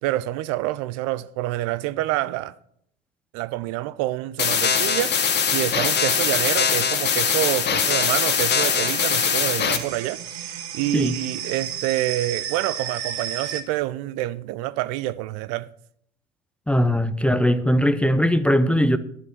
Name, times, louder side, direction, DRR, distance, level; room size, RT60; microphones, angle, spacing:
voice 1, 0.0-2.5 3.3-15.7, right 15 dB, 50° right, 0.5 m, -27 dB
sound 1, 4.4-9.8, left 7 dB, 30° left, 1.5 m, -22 dB
sound 2, 7.7-13.6, right 9 dB, 70° right, 1.4 m, -33 dB
voice 2, 16.7-19.0, equal, 5° left, 0.6 m, -20 dB
12.0 x 7.6 x 5.9 m
figure-of-eight pair, 75°, 34 cm